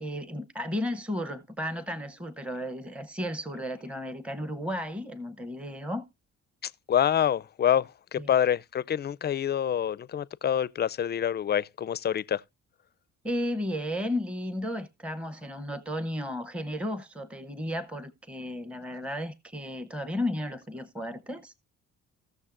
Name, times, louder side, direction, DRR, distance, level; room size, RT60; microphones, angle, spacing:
voice 1, 0.0-6.1 8.2-8.3 13.2-21.5, left 1 dB, 5° right, 0.8 m, -34 dB
voice 2, 6.6-12.4, left 9 dB, 35° left, 0.4 m, -27 dB
17.5 x 6.5 x 2.5 m
cardioid pair, 90°, 30 cm